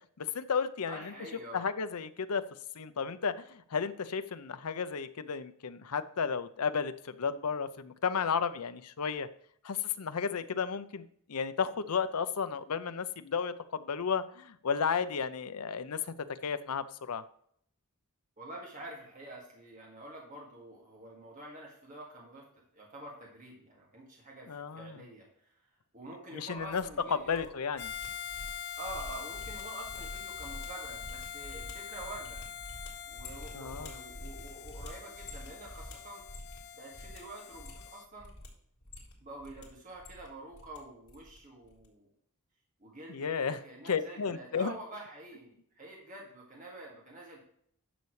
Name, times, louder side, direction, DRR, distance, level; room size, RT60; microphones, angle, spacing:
voice 1, 0.2-1.1 1.5-2.4 2.7-9.3 9.6-11.0 11.3-16.0 16.4-17.2 24.5-25.0 26.3-26.8 27.1-27.9 33.5-33.9 43.1-43.6 43.9-44.8, left 6 dB, 85° left, 12 dB, 0.6 m, -33 dB
voice 2, 0.9-1.7 18.4-22.4 22.7-25.5 25.9-27.5 28.8-32.4 33.1-36.2 36.7-38.3 39.2-42.1 42.8-47.4, right 1 dB, 35° right, -2 dB, 2.1 m, -47 dB
handle gear, 26.7-27.5 27.7-36.7 36.9-37.2 37.5-38.5 38.8-39.6 39.9-40.8 41.1-41.4 41.6-41.9, left 1 dB, 70° left, 3.9 m, -47 dB
Harmonica, 27.8-38.1, left 8 dB, 50° left, 0.6 m, -44 dB
11.0 x 6.9 x 3.2 m, 0.66 s
head